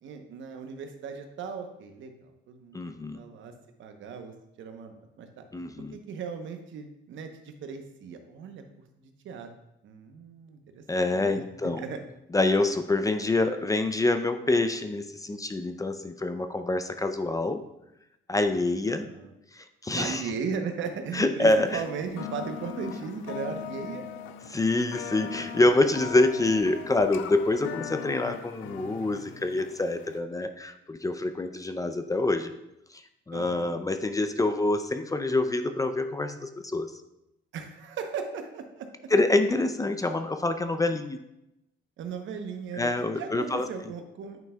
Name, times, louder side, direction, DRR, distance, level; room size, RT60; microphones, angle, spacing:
voice 1, 0.0-2.8 3.1-3.5 3.8-5.4 5.9-9.5 9.8-11.4 11.8-12.0 18.9-19.3 19.9-24.0 33.3-33.8 37.5-39.1 42.0-44.4, right 6 dB, 75° right, 6 dB, 0.8 m, -37 dB
voice 2, 2.7-3.2 5.5-6.0 10.9-11.8 12.3-17.6 18.3-19.1 19.5-20.3 21.1-21.8 22.8-22.9 24.5-32.5 32.9-36.9 39.1-41.2 42.8-43.7, left 2 dB, 15° left, 8 dB, 0.4 m, -26 dB
sound 1, 21.6-30.2, left 8 dB, 85° left, 0.4 m, -40 dB
9.1 x 5.6 x 2.2 m, 0.86 s
cardioid pair, 90°, 20 cm